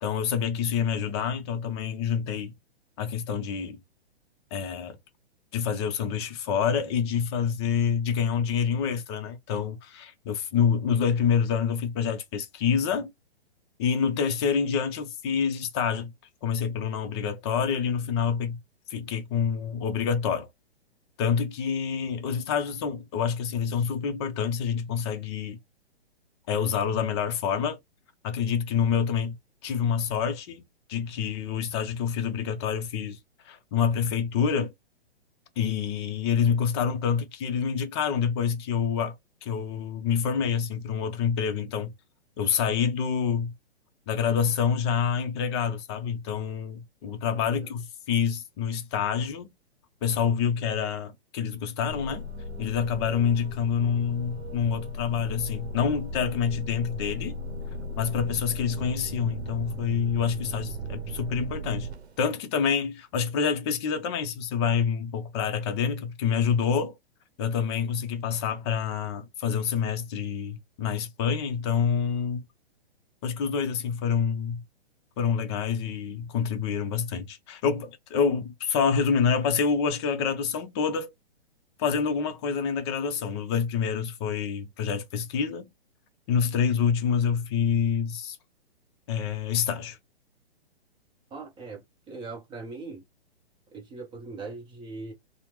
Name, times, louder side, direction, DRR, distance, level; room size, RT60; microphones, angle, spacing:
voice 1, 0.0-2.5 3.0-3.8 4.5-5.0 5.5-13.1 13.8-16.1 16.4-18.6 18.9-20.5 21.2-25.6 26.5-27.8 28.2-29.4 29.6-30.6 30.9-33.2 33.4-34.7 35.6-39.1 39.4-41.9 42.4-43.5 44.1-49.5 50.0-52.3 52.6-57.3 58.0-61.9 62.2-67.0 67.4-72.4 73.2-74.6 75.2-81.1 81.8-85.7 86.3-88.4 89.1-90.0, left 7 dB, 25° left, 0.5 m, -27 dB
sound 1, 51.9-62.2, left 1 dB, 80° right, 0.7 m, -37 dB
voice 2, 91.3-93.0 93.7-95.1, right 3 dB, 15° right, 0.7 m, -40 dB
2.8 x 2.0 x 3.3 m
hypercardioid pair, 130°, 32 cm